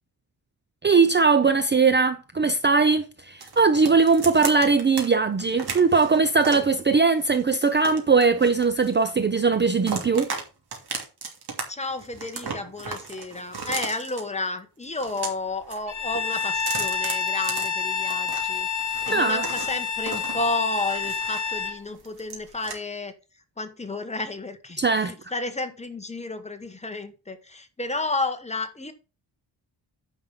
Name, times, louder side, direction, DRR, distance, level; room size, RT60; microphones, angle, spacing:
voice 1, 0.8-10.3 19.1-19.4 24.8-25.1, right 4 dB, 25° right, 0.5 m, -20 dB
sound 1, 3.4-5.1 5.4-6.7 7.2-9.2 9.5-10.4 10.7-11.6 11.9-14.2 14.8-15.8 16.1-18.4 18.8-21.6 22.0-22.7, right 5 dB, 60° right, 2.8 m, -35 dB
voice 2, 11.7-18.7 19.1-23.1 23.6-28.9, left 2 dB, 15° left, 1.2 m, -31 dB
Bowed string instrument, 15.9-21.8, left 6 dB, 45° left, 1.6 m, -28 dB
9.7 x 5.4 x 5.4 m
wide cardioid pair, 160°, 43 cm